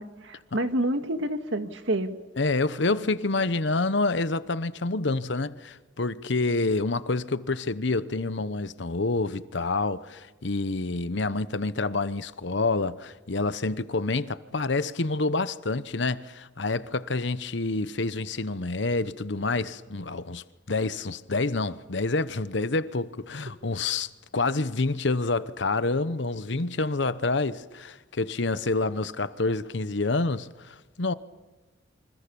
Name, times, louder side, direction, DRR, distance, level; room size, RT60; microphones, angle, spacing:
voice 1, 0.0-2.1, right 1 dB, 70° right, 1.9 m, -28 dB
voice 2, 2.4-31.1, left 3 dB, 65° left, 0.9 m, -28 dB
28.0 x 25.5 x 7.0 m
head